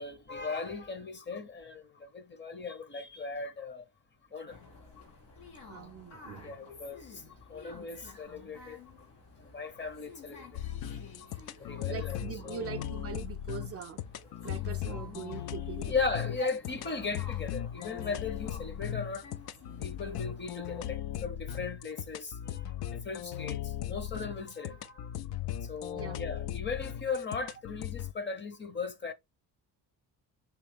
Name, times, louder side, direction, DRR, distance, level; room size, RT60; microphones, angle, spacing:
voice 1, 0.0-3.9 4.3-4.6 6.4-8.8 9.4-10.6 11.2-12.7 15.9-19.3 19.8-25.1 25.6-29.1, left 4 dB, 25° left, 0.7 m, -38 dB
sound 1, 4.5-21.0, left 4 dB, 90° left, 1.4 m, -52 dB
voice 2, 5.7-6.5 11.9-14.0 14.4-15.9 16.4-16.5 25.9-26.3, right 8 dB, 35° right, 0.4 m, -42 dB
sound 2, 10.5-28.1, left 11 dB, 65° left, 0.5 m, -38 dB
3.1 x 3.0 x 3.3 m
cardioid pair, 80°, 41 cm